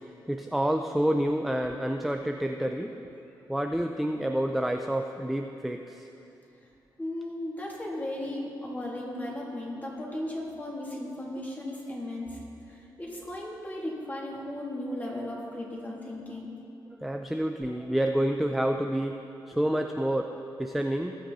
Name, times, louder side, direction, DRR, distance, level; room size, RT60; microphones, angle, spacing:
voice 1, 0.0-3.1 3.5-6.1 17.0-19.2 19.5-21.2, right 1 dB, ahead, 5 dB, 0.5 m, -28 dB
voice 2, 7.0-12.4 12.7-16.5, left 1 dB, 20° left, -4 dB, 3.1 m, -36 dB
19.5 x 6.5 x 4.2 m, 2.8 s
cardioid pair, 75°, 8 cm